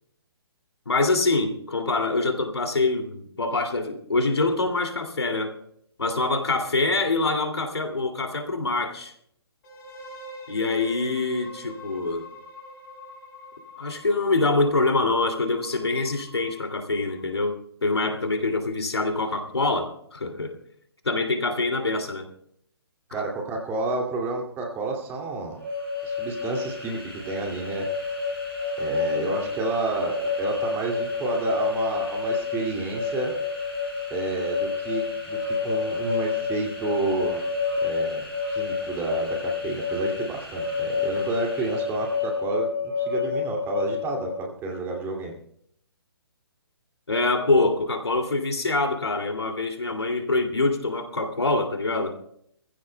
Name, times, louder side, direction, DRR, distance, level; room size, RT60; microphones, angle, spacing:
voice 1, 0.9-5.5 6.0-9.1 10.5-12.3 13.8-20.5 21.0-22.3 23.1-23.2 29.1-29.5 47.1-52.1, left 3 dB, 80° left, 5 dB, 2.5 m, -25 dB
sound 1, 9.6-17.4, left 1 dB, 45° left, 6.5 m, -44 dB
voice 2, 23.1-25.6 26.0-27.9 28.8-33.4 34.1-37.4 37.8-42.7 43.0-45.4, right 3 dB, 15° right, 1 dB, 2.4 m, -30 dB
sound 2, 25.5-42.4, equal, 10° left, 6.9 m, -43 dB
sound 3, 25.6-44.4, left 5 dB, 60° right, 3.6 m, -29 dB
24.5 x 15.5 x 2.2 m, 0.69 s
figure-of-eight pair, 135°, 13 cm